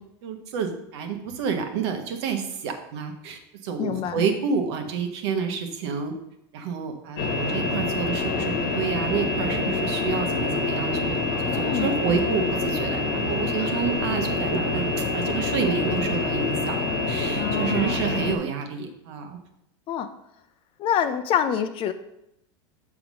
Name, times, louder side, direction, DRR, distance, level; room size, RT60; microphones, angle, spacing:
voice 1, 0.2-6.1 6.5-19.4, right 6 dB, 65° right, 5 dB, 1.2 m, -29 dB
voice 2, 3.8-4.2 11.5-11.9 13.6-13.7 17.4-18.0 19.9-20.1 20.8-21.9, left 9 dB, 35° left, 10 dB, 0.6 m, -26 dB
sound 1, 7.2-18.4, left 3 dB, 65° left, 1.2 m, -26 dB
6.9 x 3.7 x 6.2 m, 0.82 s
supercardioid pair, 125°, 15 cm